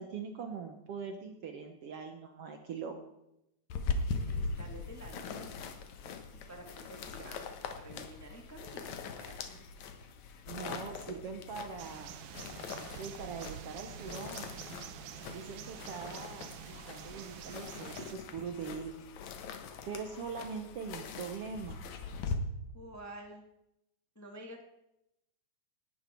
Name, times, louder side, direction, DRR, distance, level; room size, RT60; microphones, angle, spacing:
voice 1, 0.0-3.0 10.5-12.1 13.0-14.6 15.3-19.0 19.9-21.8, right 5 dB, 60° right, 6 dB, 1.8 m, -42 dB
sound 1, 3.7-22.4, left 4 dB, 70° left, 2.5 m, -41 dB
voice 2, 4.2-5.6 6.5-7.5 7.8-9.6 22.7-23.4 24.1-24.6, right 1 dB, 5° left, 2 dB, 1.5 m, -50 dB
sound 2, 11.8-18.2, right 10 dB, 75° right, 1.3 m, -47 dB
18.0 x 12.0 x 4.6 m, 0.85 s
omnidirectional pair, 3.5 m